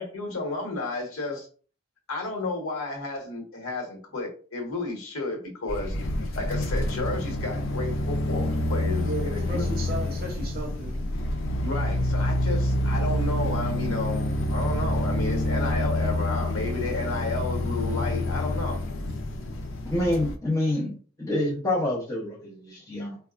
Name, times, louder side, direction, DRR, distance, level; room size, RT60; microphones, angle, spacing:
voice 1, 0.0-1.5 2.1-6.0 6.4-9.7 11.6-18.8, left 2 dB, 90° left, 1 dB, 1.1 m, -32 dB
sound 1, 5.7-20.4, left 1 dB, 65° left, 0.5 m, -27 dB
voice 2, 9.0-11.1, right 2 dB, 50° right, 1 dB, 0.7 m, -35 dB
voice 3, 19.8-23.2, left 1 dB, 15° left, -5 dB, 0.6 m, -27 dB
3.9 x 2.2 x 2.4 m, 0.41 s
head